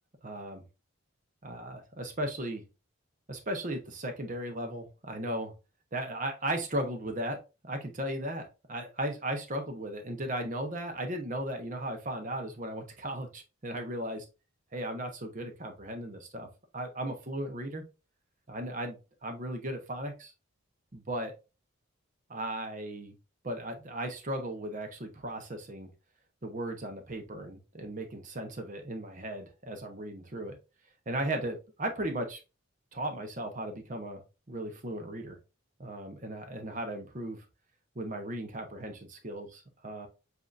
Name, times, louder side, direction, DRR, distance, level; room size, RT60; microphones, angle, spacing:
voice 1, 0.2-0.6 1.4-2.6 3.3-5.5 5.9-7.4 7.6-14.2 14.7-16.5 16.7-17.8 18.5-20.3 20.9-21.3 22.3-23.2 23.4-25.9 26.4-30.6 31.1-32.4 32.9-34.2 34.5-35.4 35.8-37.4 37.9-40.1, right 1 dB, 35° right, 5 dB, 0.9 m, -36 dB
7.4 x 2.8 x 2.5 m, 0.30 s
head